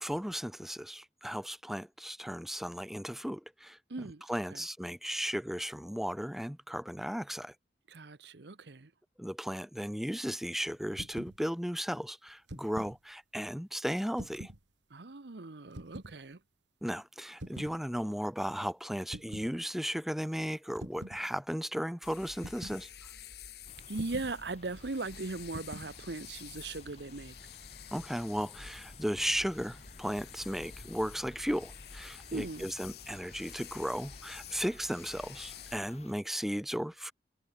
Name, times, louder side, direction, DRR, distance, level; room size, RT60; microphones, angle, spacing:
voice 1, 0.0-3.8 4.3-7.5 9.2-14.5 16.8-22.9 27.9-37.1, equal, ahead, 0.9 m, -35 dB
voice 2, 3.9-4.2 4.5-4.6 7.9-8.9 14.9-16.4 23.9-27.3 32.3-32.7, right 3 dB, 70° right, 1.0 m, -39 dB
sound 1, 10.9-11.4 12.3-13.0 14.1-14.6 15.7-16.1 17.4-17.8 19.1-19.5 20.8-21.2 22.4-22.8 24.0-24.4 25.5-25.9, right 1 dB, 90° right, 2.7 m, -44 dB
sound 2, 22.0-35.8, left 7 dB, 60° left, 3.2 m, -50 dB
sound 3, 23.7-36.1, left 2 dB, 35° left, 6.5 m, -56 dB
head